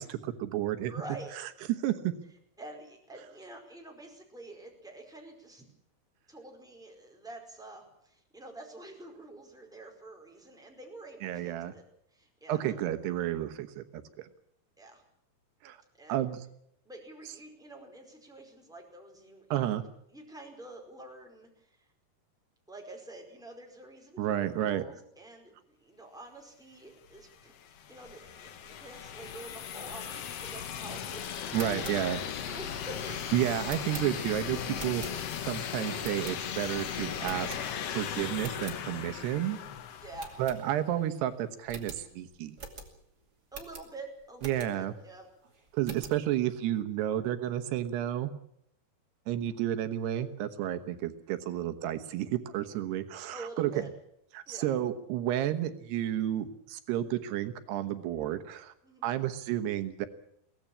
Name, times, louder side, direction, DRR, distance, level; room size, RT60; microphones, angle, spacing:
voice 1, 0.0-0.9 1.8-2.1 11.2-11.7 12.5-14.3 15.6-15.8 16.1-16.5 19.5-19.8 24.2-24.8 31.5-32.2 33.3-37.6 37.9-39.6 40.4-42.5 44.4-44.9 45.7-48.3 49.3-53.7 54.3-58.7 59.0-60.1, right 12 dB, 85° right, 9 dB, 3.3 m, -31 dB
voice 2, 0.9-1.3 2.6-5.7 6.3-11.8 12.1-12.8 14.8-15.0 15.9-16.2 16.8-19.7 20.1-21.9 22.7-32.1 32.4-32.9 40.0-40.4 43.5-45.3 53.3-53.9 54.5-54.7 58.8-59.1, right 2 dB, ahead, 1 dB, 4.4 m, -47 dB
sound 1, 27.1-40.9, left 8 dB, 85° left, 1.3 m, -37 dB
sound 2, 31.4-35.5 36.0-36.7 37.2-38.0 38.3-38.8 39.3-39.4 39.6-39.7 40.2-41.1 41.3-41.4 41.7-45.0 45.4-46.2, right 4 dB, 30° right, 2.5 m, -47 dB
23.0 x 17.0 x 8.6 m, 0.72 s
omnidirectional pair, 4.7 m